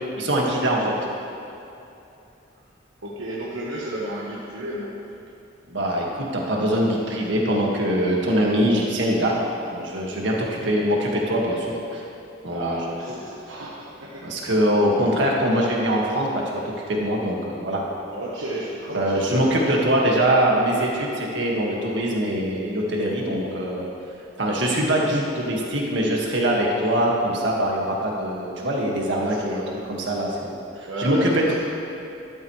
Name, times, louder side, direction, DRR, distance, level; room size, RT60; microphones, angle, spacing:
voice 1, 0.2-1.0 5.7-9.4 9.7-12.0 12.4-12.8 14.2-17.8 18.9-23.9 24.4-29.6 29.9-31.5, equal, 65° right, -2 dB, 1.9 m, -23 dB
voice 2, 3.0-5.0 12.5-14.4 14.9-15.3 18.1-19.7 20.1-20.3 29.2-29.8 30.8-31.5, right 1 dB, 80° right, -5 dB, 1.2 m, -33 dB
13.0 x 12.0 x 3.3 m, 2.8 s
head